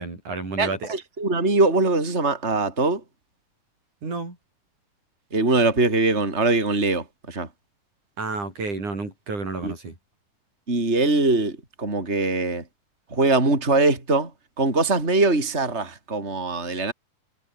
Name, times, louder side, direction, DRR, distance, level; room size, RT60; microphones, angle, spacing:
voice 1, 0.0-0.9 4.0-4.4 8.2-10.0, right 3 dB, 55° right, 8.5 m, -31 dB
voice 2, 0.6-3.0 5.3-7.5 9.6-9.7 10.7-12.6 13.1-14.3 14.6-16.9, right 2 dB, 15° right, 5.3 m, -22 dB
omnidirectional pair, 4.1 m